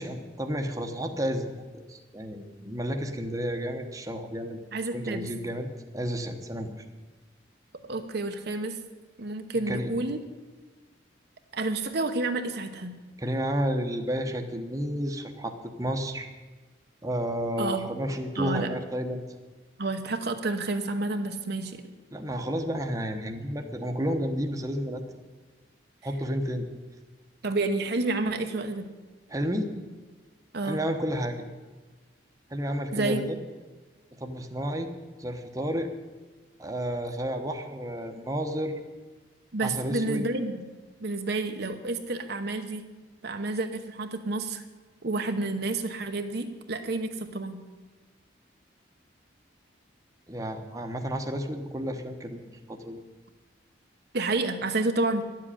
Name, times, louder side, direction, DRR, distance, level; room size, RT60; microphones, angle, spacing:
voice 1, 0.0-4.6 4.9-5.7 5.9-6.7 9.7-9.9 13.2-16.3 17.0-19.2 22.1-25.0 26.0-26.7 29.3-29.7 30.6-31.4 32.5-33.4 34.2-34.9 35.2-35.9 36.6-38.7 39.6-40.2 50.3-53.0, equal, 15° right, 4 dB, 1.0 m, -31 dB
voice 2, 4.7-5.3 7.9-8.8 9.2-10.2 11.5-13.0 17.6-17.9 18.4-18.7 19.8-21.8 27.4-28.9 30.5-30.8 32.9-33.2 39.5-40.6 41.0-42.8 43.2-44.6 45.0-47.6 54.1-55.2, right 2 dB, 55° right, 6 dB, 0.9 m, -29 dB
11.0 x 7.5 x 9.9 m, 1.3 s
head